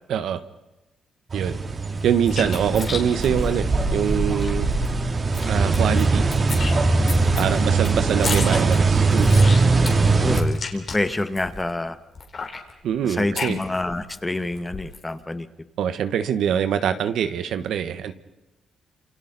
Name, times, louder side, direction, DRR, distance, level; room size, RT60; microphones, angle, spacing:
voice 1, 0.1-0.4 1.3-1.6 2.0-4.7 5.5-6.3 7.3-9.6 12.8-13.6 15.8-18.1, right 8 dB, 80° right, 10 dB, 1.3 m, -24 dB
sound 1, 1.3-10.4, right 3 dB, 40° right, 2.9 m, -21 dB
sound 2, 2.0-4.5 4.8-4.9 5.2-6.1 6.3-11.7 12.2-14.2 14.5-15.1, left 4 dB, 50° left, 3.7 m, -33 dB
voice 2, 10.2-12.0 13.0-15.5, left 2 dB, 15° left, 9 dB, 1.6 m, -27 dB
30.0 x 27.5 x 4.2 m, 1.0 s
cardioid pair, 85°, 0 cm